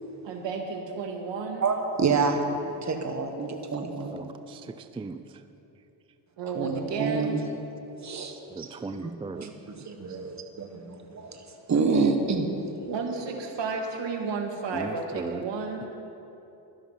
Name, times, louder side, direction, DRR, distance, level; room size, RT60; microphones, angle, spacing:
voice 1, 0.2-1.7 6.4-7.4 8.5-8.6 10.1-10.2 12.9-15.9, right 4 dB, 70° right, 2 dB, 1.9 m, -32 dB
voice 2, 1.6-2.4 2.8-4.2 6.5-6.7 7.0-7.4 8.0-8.3 8.6-8.7 9.0-11.4 11.7-12.5, right 4 dB, 40° right, 5 dB, 1.4 m, -27 dB
voice 3, 4.1-4.6 5.0-5.2 8.6-9.5 14.7-15.4, right 3 dB, 15° right, 10 dB, 0.3 m, -36 dB
12.5 x 10.0 x 5.6 m, 2.9 s
cardioid pair, 85°, 45 cm